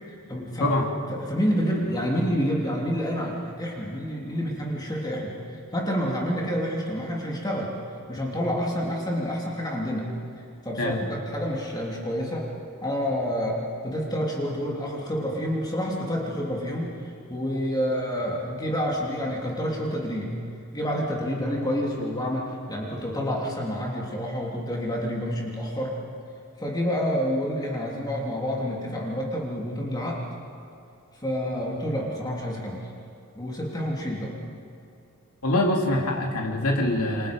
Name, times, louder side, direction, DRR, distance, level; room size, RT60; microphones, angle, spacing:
voice 1, 0.1-0.7 1.1-7.7 8.1-10.1 10.6-12.5 12.8-20.3 20.7-26.0 26.6-30.3 31.2-32.9 33.3-34.3, equal, 20° left, -3 dB, 3.1 m, -28 dB
voice 2, 35.4-37.3, left 1 dB, 75° left, 0 dB, 3.2 m, -24 dB
29.5 x 25.0 x 5.3 m, 2.5 s
head